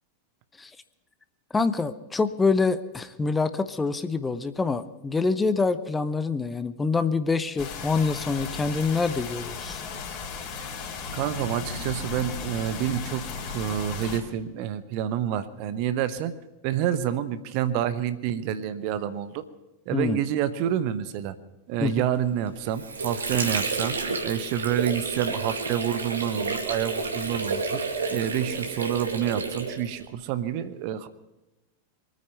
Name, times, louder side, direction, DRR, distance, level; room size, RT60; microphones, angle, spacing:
voice 1, 1.5-9.8 19.9-20.2 21.8-21.9, left 4 dB, 10° left, 12 dB, 0.7 m, -26 dB
sound 1, 7.6-14.2, left 5 dB, 35° left, 3.9 m, -35 dB
voice 2, 11.1-16.3 16.6-19.4 19.9-21.3 21.7-24.0 24.2-27.8 28.1-31.1, right 10 dB, 45° right, 13 dB, 1.0 m, -28 dB
Water / Sink (filling or washing), 22.4-30.1, right 3 dB, 70° right, 2.0 m, -30 dB
24.0 x 9.4 x 5.5 m, 1.0 s
figure-of-eight pair, 90°, 0 cm